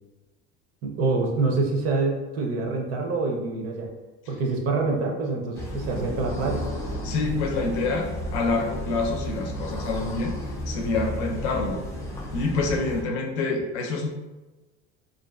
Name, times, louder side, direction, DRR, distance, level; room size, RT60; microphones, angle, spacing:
voice 1, 0.8-3.9 4.3-6.7, right 3 dB, 45° right, 1 dB, 0.5 m, -26 dB
sound 1, 5.5-13.0, equal, 10° left, 0.3 m, -33 dB
voice 2, 7.0-11.8 12.3-14.1, left 3 dB, 90° left, 1 dB, 0.6 m, -27 dB
2.5 x 2.4 x 2.2 m, 1.1 s
supercardioid pair, 120°, 32 cm